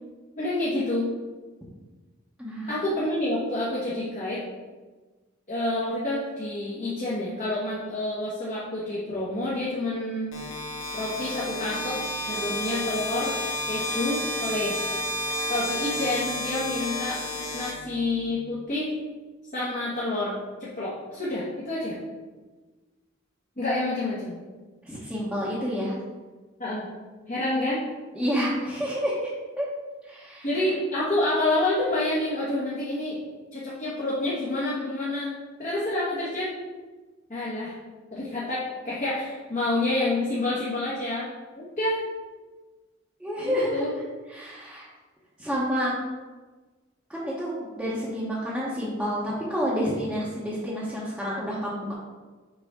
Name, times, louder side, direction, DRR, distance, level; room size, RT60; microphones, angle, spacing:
voice 1, 0.4-1.1 2.7-4.4 5.5-10.3 10.9-12.0 12.2-13.3 13.7-14.8 15.5-17.2 17.5-18.9 19.5-22.0 23.6-24.4 26.6-26.9 27.3-27.8 30.4-33.2 33.5-36.5 37.3-37.7 38.1-41.3 41.6-42.0 43.4-43.9, left 2 dB, 40° left, -7 dB, 1.4 m, -28 dB
voice 2, 2.4-2.7 24.8-26.0 28.1-29.3 29.6-29.7 30.0-30.5 43.2-43.9 44.3-44.9 45.4-45.9 47.1-51.9, equal, 5° right, -10 dB, 1.1 m, -29 dB
sound 1, 10.3-18.3, left 1 dB, 75° left, 1.6 m, -31 dB
6.7 x 5.2 x 3.7 m, 1.3 s
head